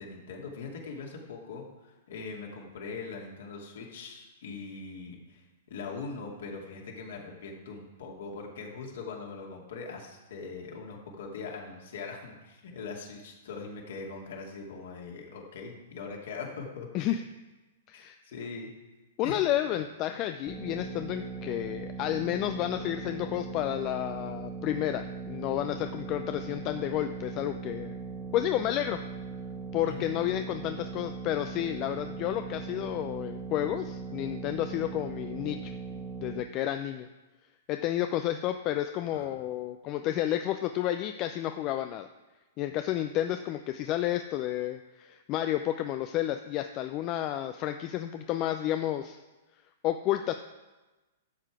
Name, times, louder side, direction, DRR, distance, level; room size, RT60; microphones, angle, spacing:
voice 1, 0.0-17.2 17.9-18.7 19.2-19.4 29.9-30.1 39.1-39.4, left 4 dB, 65° left, 0 dB, 2.5 m, -41 dB
voice 2, 19.2-28.0 28.3-29.0 29.7-35.6 36.2-37.1 37.7-42.1 42.6-49.2 49.8-50.3, left 12 dB, 35° left, 8 dB, 0.5 m, -31 dB
sound 1, 20.5-36.4, right 4 dB, 5° left, 1.5 m, -39 dB
12.5 x 7.5 x 4.9 m, 1.1 s
figure-of-eight pair, 110°, 0 cm